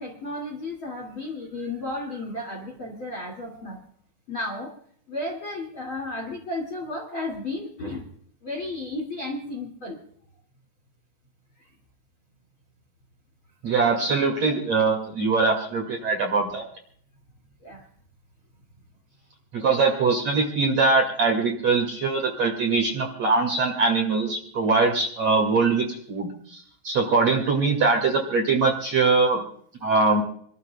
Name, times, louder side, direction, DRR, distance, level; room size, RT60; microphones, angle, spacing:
voice 1, 0.0-3.8 4.3-4.7 5.1-8.0 8.4-10.0 13.7-13.8 17.6-17.9, left 2 dB, 35° left, 0 dB, 2.2 m, -33 dB
voice 2, 13.6-16.6 19.5-29.4 29.8-30.2, right 4 dB, 45° right, 1 dB, 2.6 m, -22 dB
28.5 x 13.0 x 2.3 m, 0.62 s
omnidirectional pair, 5.3 m